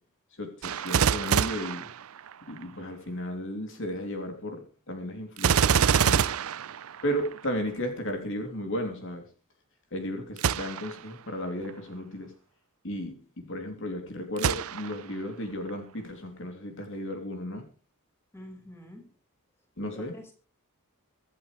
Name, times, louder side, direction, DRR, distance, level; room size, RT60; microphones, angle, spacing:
voice 1, 0.3-1.9 2.5-6.4 7.0-9.2 9.9-12.3 12.8-17.7 19.8-20.1, equal, 60° left, 4 dB, 3.0 m, -34 dB
Gunshot gunfire, 0.6-2.6 5.4-7.4 10.4-11.0 11.6-11.7 14.4-15.1 15.7-15.8, right 7 dB, 70° right, 0.5 m, -26 dB
voice 2, 18.3-19.1 19.9-20.3, left 1 dB, 10° left, 2 dB, 5.1 m, -46 dB
24.0 x 8.8 x 3.3 m, 0.35 s
head